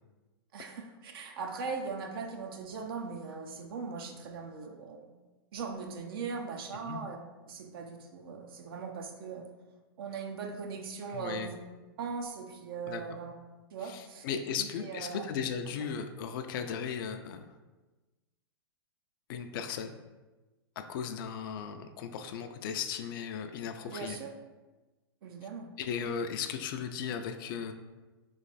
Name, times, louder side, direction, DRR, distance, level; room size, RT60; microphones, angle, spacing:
voice 1, 0.5-5.1 5.5-7.2 7.5-9.5 10.0-11.6 12.0-13.3 13.7-14.2 14.6-15.3 23.9-24.3 25.2-25.7 26.0-26.1, right 5 dB, 65° right, 3 dB, 0.6 m, -39 dB
voice 2, 11.1-11.5 12.9-13.0 13.8-17.4 19.3-20.0 20.8-24.2 25.8-27.7, left 7 dB, 55° left, 6 dB, 0.4 m, -36 dB
3.2 x 3.1 x 4.0 m, 1.2 s
hypercardioid pair, 115°, 13 cm